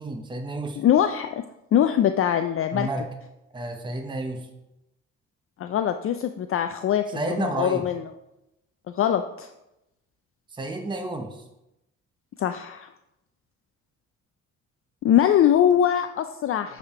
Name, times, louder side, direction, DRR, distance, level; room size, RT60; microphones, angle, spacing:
voice 1, 0.0-0.8 2.7-3.0 3.5-4.5 7.1-7.8 10.5-11.4, right 2 dB, 15° right, 4 dB, 0.8 m, -31 dB
voice 2, 0.8-1.4 1.7-2.9 5.6-8.0 8.9-9.5 12.4-12.9 15.0-16.8, left 10 dB, 45° left, 8 dB, 0.4 m, -22 dB
7.9 x 3.6 x 4.7 m, 0.90 s
cardioid pair, 90°, 30 cm